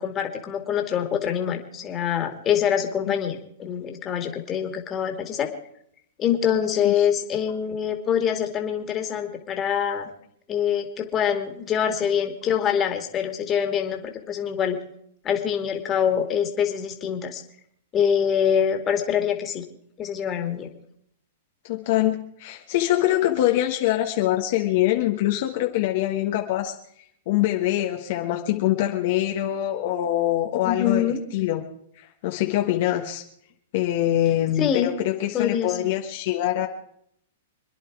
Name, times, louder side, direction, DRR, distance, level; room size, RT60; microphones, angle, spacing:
voice 1, 0.0-5.5 6.2-10.1 10.5-14.8 15.2-17.4 17.9-19.6 20.0-20.7 30.6-31.2 34.6-34.9 35.3-35.9, left 8 dB, 25° left, 4 dB, 2.3 m, -25 dB
voice 2, 21.6-26.7 27.3-31.1 31.3-31.6 32.0-33.2 33.7-36.7, left 13 dB, 55° left, 3 dB, 1.4 m, -24 dB
27.0 x 10.5 x 4.8 m, 0.71 s
hypercardioid pair, 145°, 0 cm